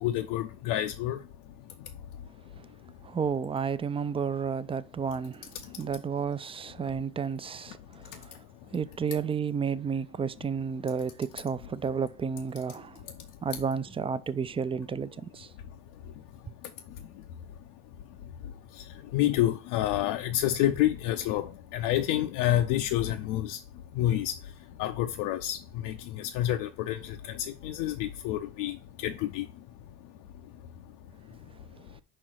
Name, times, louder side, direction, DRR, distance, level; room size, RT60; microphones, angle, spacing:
voice 1, 0.0-1.2 19.1-23.6 24.0-24.3 24.8-25.6 25.8-29.5, left 13 dB, 70° left, 0.7 m, -28 dB
voice 2, 3.0-5.5 5.8-8.4 8.7-13.1 13.4-15.5, right 6 dB, 15° right, 0.3 m, -32 dB
5.2 x 4.5 x 6.2 m
hypercardioid pair, 75°, 46 cm